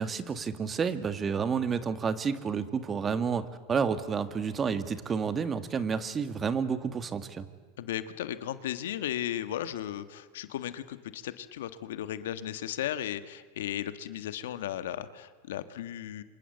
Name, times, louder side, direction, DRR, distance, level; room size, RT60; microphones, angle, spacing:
voice 1, 0.0-7.5, right 6 dB, 25° right, 11 dB, 1.9 m, -30 dB
voice 2, 7.8-16.2, left 11 dB, 80° left, 12 dB, 1.5 m, -35 dB
27.5 x 26.0 x 8.1 m, 1.4 s
hypercardioid pair, 110°, 0 cm